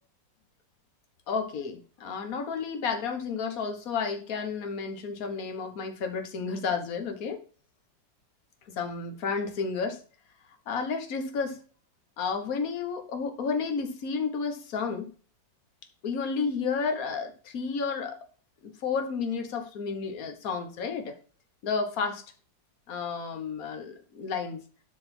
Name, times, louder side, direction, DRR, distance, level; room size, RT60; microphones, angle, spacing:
voice 1, 1.3-7.4 8.7-10.0 10.7-11.6 12.2-15.1 16.0-18.2 18.6-21.1 21.6-22.2 22.9-24.6, left 5 dB, 50° left, 6 dB, 1.7 m, -31 dB
11.5 x 4.2 x 4.4 m, 0.40 s
omnidirectional pair, 2.1 m